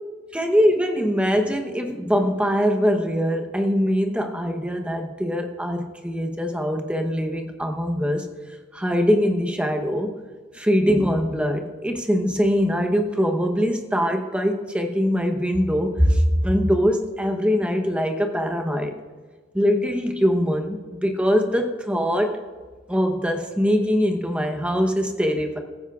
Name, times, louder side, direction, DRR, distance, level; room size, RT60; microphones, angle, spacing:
voice 1, 0.3-8.3 8.7-10.1 10.5-18.9 19.5-22.4 22.9-25.6, equal, 5° right, 4 dB, 0.9 m, -22 dB
16.5 x 15.0 x 2.4 m, 1.4 s
head